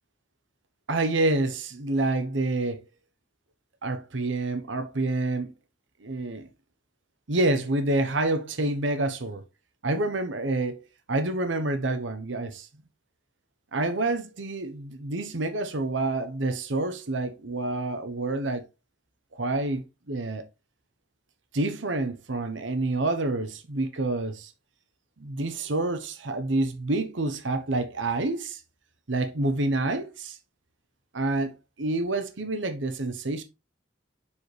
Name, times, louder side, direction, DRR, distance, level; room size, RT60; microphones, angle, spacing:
voice 1, 0.9-2.8 3.8-5.5 6.0-6.5 7.3-9.4 9.8-12.7 13.7-18.6 19.4-20.4 21.5-24.5 25.2-28.6 29.1-30.4 31.1-33.4, right 2 dB, 90° right, 1.0 m, -28 dB
6.9 x 4.8 x 3.3 m
head